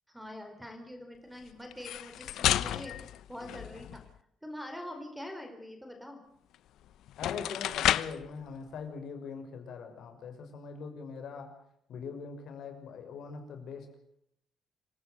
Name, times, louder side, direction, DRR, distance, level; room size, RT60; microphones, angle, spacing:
voice 1, 0.1-3.0 3.3-4.0 4.4-6.2, left 1 dB, 5° right, 5 dB, 4.5 m, -44 dB
sound 1, 1.7-4.1 6.5-6.6 7.1-8.3, left 12 dB, 90° left, 0.9 m, -31 dB
voice 2, 7.2-11.5 11.9-13.9, left 5 dB, 70° left, 5 dB, 6.0 m, -42 dB
27.0 x 17.0 x 8.0 m, 0.74 s
cardioid pair, 150°, 0 cm